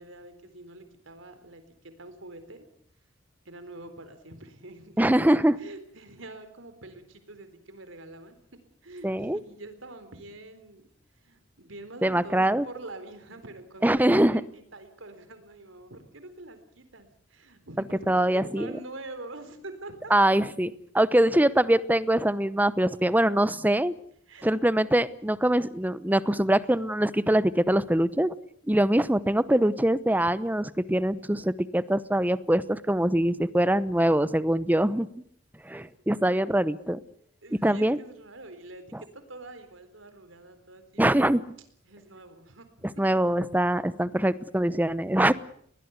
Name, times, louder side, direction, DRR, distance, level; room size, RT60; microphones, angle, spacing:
voice 1, 0.0-2.7 3.5-8.4 8.8-10.9 11.1-14.0 14.5-20.1 24.3-24.5 35.7-36.4 37.4-41.4 41.8-42.9, right 2 dB, 85° right, 10 dB, 4.0 m, -45 dB
voice 2, 5.0-5.6 9.0-9.4 12.0-12.7 13.8-14.4 18.1-18.7 20.1-23.9 24.4-28.3 28.7-35.1 35.6-37.0 37.6-38.0 41.0-41.4 43.0-45.3, right 1 dB, 10° right, 16 dB, 0.9 m, -23 dB
22.0 x 19.5 x 8.2 m, 0.64 s
head